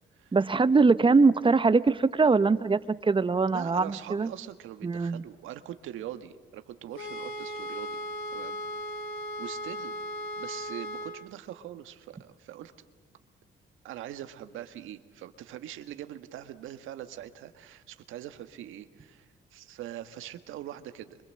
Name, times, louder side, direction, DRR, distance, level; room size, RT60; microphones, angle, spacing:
voice 1, 0.3-4.3 4.8-5.2, right 4 dB, 25° right, 14 dB, 1.0 m, -22 dB
voice 2, 3.5-8.0 8.3-8.6 9.4-9.9 10.4-12.7 13.8-21.2, right 12 dB, 90° right, 9 dB, 1.6 m, -42 dB
sound 1, 6.9-11.1, equal, 90° left, 6.4 m, -37 dB
26.0 x 24.5 x 7.8 m, 1.4 s
cardioid pair, 90°, 20 cm